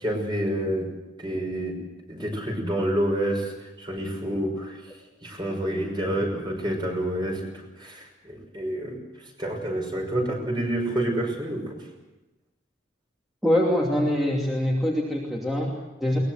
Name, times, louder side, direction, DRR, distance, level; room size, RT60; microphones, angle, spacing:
voice 1, 0.0-0.9 1.2-1.8 2.1-4.8 5.2-7.5 7.8-9.0 9.4-11.8, right 1 dB, 25° right, 2 dB, 5.9 m, -28 dB
voice 2, 13.4-16.2, left 1 dB, ahead, -3 dB, 2.8 m, -24 dB
22.5 x 20.5 x 7.9 m, 1.0 s
head